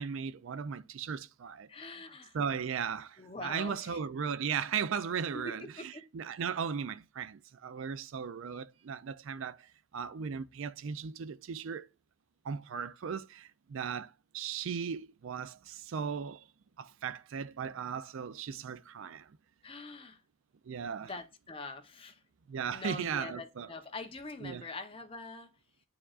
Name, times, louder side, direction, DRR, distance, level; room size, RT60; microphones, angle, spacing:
voice 1, 0.0-1.7 2.3-11.9 12.4-16.4 16.8-19.3 20.7-21.1 22.5-23.7 24.4-24.6, right 6 dB, 70° right, 0.4 m, -37 dB
voice 2, 1.7-2.4 3.2-4.0 5.3-6.0 19.6-20.2 21.0-22.2 22.7-25.5, left 2 dB, 25° left, 0.7 m, -44 dB
9.9 x 4.6 x 2.4 m
head